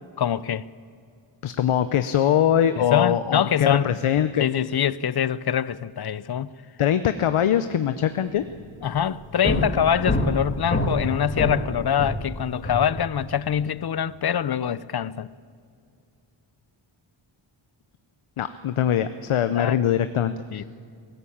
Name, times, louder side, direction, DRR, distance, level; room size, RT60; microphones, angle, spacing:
voice 1, 0.2-0.7 2.8-4.0 4.4-6.5 8.8-15.3 19.5-19.8 20.5-20.6, left 9 dB, 50° left, 0.6 m, -24 dB
voice 2, 1.4-4.5 6.8-8.4 18.4-20.6, left 10 dB, 80° left, 0.8 m, -22 dB
sound 1, 8.4-8.6 8.9-12.9, left 1 dB, 25° left, 2.7 m, -26 dB
22.0 x 14.5 x 8.6 m
wide cardioid pair, 80°, 49 cm